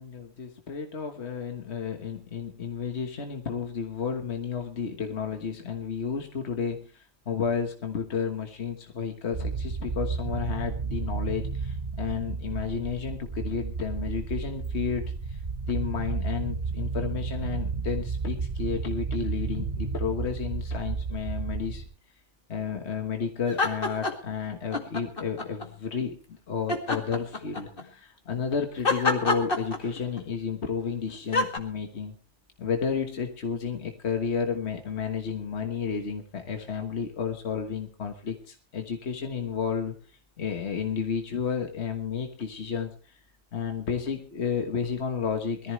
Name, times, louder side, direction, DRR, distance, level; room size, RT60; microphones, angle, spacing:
voice 1, 0.4-15.4 15.7-21.8 22.5-26.2 26.5-32.1 32.6-39.9 40.4-43.2 43.5-45.7, left 6 dB, 65° left, 4 dB, 1.7 m, -32 dB
sound 1, 9.3-21.8, right 5 dB, 45° right, 1.3 m, -32 dB
sound 2, 23.5-24.3 24.7-25.7 26.7-27.8 28.8-30.2 31.3-31.6, left 3 dB, 50° left, 2.3 m, -27 dB
22.0 x 14.0 x 3.2 m, 0.39 s
omnidirectional pair, 1.2 m